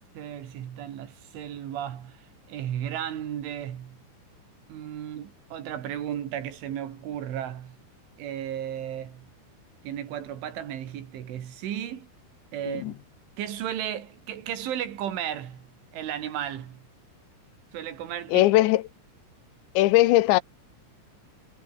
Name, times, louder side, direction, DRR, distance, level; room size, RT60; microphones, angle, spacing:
voice 1, 0.1-4.0 4.7-7.8 8.2-9.3 9.8-12.1 12.5-13.0 13.4-16.9 17.7-18.5, right 10 dB, 85° right, 5.1 m, -34 dB
voice 2, 18.3-18.8 19.8-20.4, left 17 dB, 80° left, 3.1 m, -19 dB
omnidirectional pair, 5.4 m